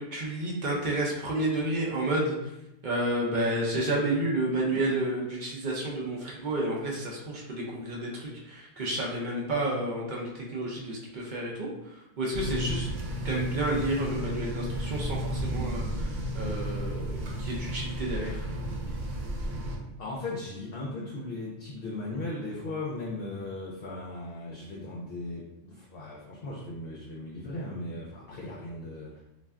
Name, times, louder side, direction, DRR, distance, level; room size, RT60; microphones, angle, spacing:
voice 1, 0.0-2.5 2.8-12.9 13.2-18.4, right 1 dB, 55° right, -3 dB, 0.6 m, -31 dB
sound 1, 12.3-19.8, equal, 85° right, 1.0 m, -33 dB
voice 2, 20.0-29.2, left 2 dB, 60° left, -4 dB, 0.7 m, -37 dB
2.4 x 2.2 x 3.4 m, 0.90 s
omnidirectional pair, 1.2 m